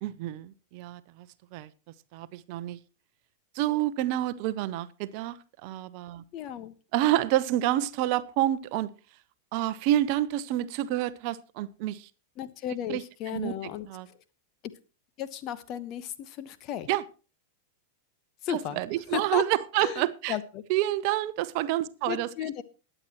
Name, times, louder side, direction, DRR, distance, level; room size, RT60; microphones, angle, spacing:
voice 1, 0.0-1.3 1.5-1.7 2.1-2.8 3.5-5.4 5.6-6.2 6.9-8.9 9.5-12.1 12.9-13.0 13.3-13.5 13.9-14.1 16.9-17.0 18.5-20.3 20.7-22.3, right 14 dB, 45° right, 0.7 m, -28 dB
voice 2, 6.3-6.7 12.4-14.2 15.2-16.9 18.4-18.8 19.1-19.4 19.8-20.6 22.1-22.6, left 10 dB, 40° left, 1.1 m, -35 dB
21.5 x 9.0 x 3.0 m
figure-of-eight pair, 90°, 0 cm